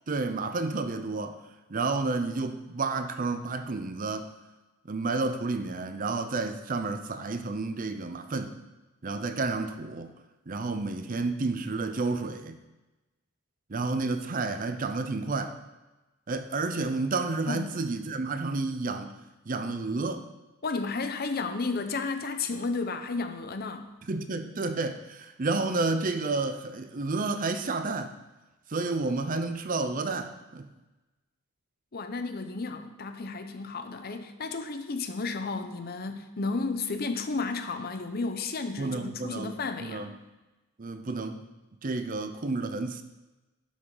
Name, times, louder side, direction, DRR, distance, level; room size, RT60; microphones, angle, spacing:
voice 1, 0.1-1.4 1.7-4.3 4.9-8.6 9.0-10.1 10.5-12.6 13.7-15.6 16.3-19.1 19.5-20.3 24.1-28.1 28.7-30.7 38.8-40.1 40.8-41.4 41.8-43.0, right 3 dB, 40° right, 9 dB, 0.6 m, -30 dB
voice 2, 20.6-23.9 31.9-40.1, left 3 dB, 45° left, 8 dB, 0.7 m, -32 dB
11.5 x 6.1 x 4.0 m, 1.1 s
head